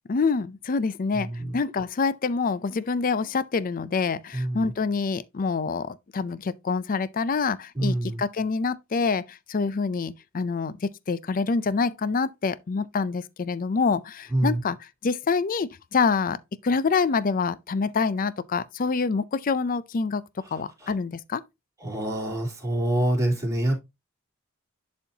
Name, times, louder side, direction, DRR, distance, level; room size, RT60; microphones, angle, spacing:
voice 1, 0.1-20.2 20.5-21.4, left 4 dB, 40° left, 0.5 m, -26 dB
voice 2, 1.1-1.5 4.3-4.7 7.7-8.2 14.3-14.6 20.8-20.9 21.8-23.7, right 1 dB, 15° right, 3.3 m, -26 dB
11.0 x 4.3 x 2.8 m
head